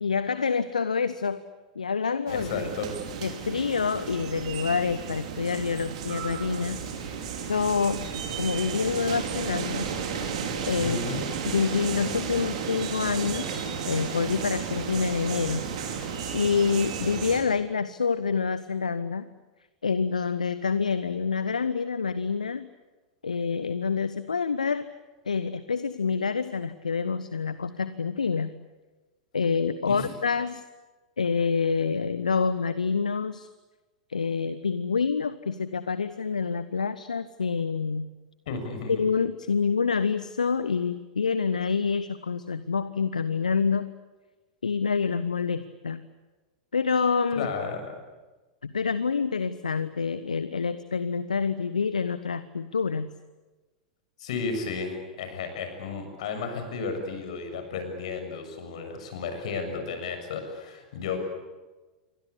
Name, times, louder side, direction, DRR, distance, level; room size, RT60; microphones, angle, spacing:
voice 1, 0.0-1.4 1.7-2.7 3.2-9.9 10.7-11.0 11.5-15.7 16.3-19.3 19.8-22.7 23.2-24.8 25.3-28.6 29.3-30.6 31.2-33.5 34.1-38.1 39.0-43.9 44.6-46.1 46.7-47.5 48.6-53.1, left 5 dB, 80° left, 14 dB, 0.9 m, -27 dB
voice 2, 2.3-2.9 10.8-11.3 29.9-30.1 38.5-38.9 47.4-47.8 54.2-61.2, left 5 dB, 60° left, 6 dB, 7.0 m, -33 dB
sound 1, 2.3-17.4, right 6 dB, 60° right, 5.2 m, -33 dB
28.5 x 24.0 x 8.5 m, 1.2 s
figure-of-eight pair, 90°, 4 cm